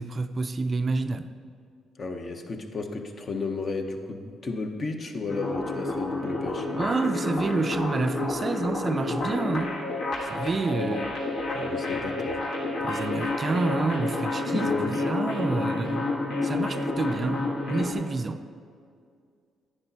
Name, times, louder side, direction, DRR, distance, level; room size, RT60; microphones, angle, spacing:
voice 1, 0.0-1.3 6.7-9.8 10.2-11.1 12.1-12.2 12.8-14.7 15.0-16.1 16.4-18.4, right 3 dB, 35° right, 0.4 m, -29 dB
voice 2, 2.0-6.7 11.5-12.4 14.5-14.9, left 3 dB, 45° left, 0.8 m, -33 dB
sound 1, 5.3-17.9, left 2 dB, 70° left, 1.3 m, -29 dB
9.9 x 9.8 x 2.8 m
cardioid pair, 90°, 0 cm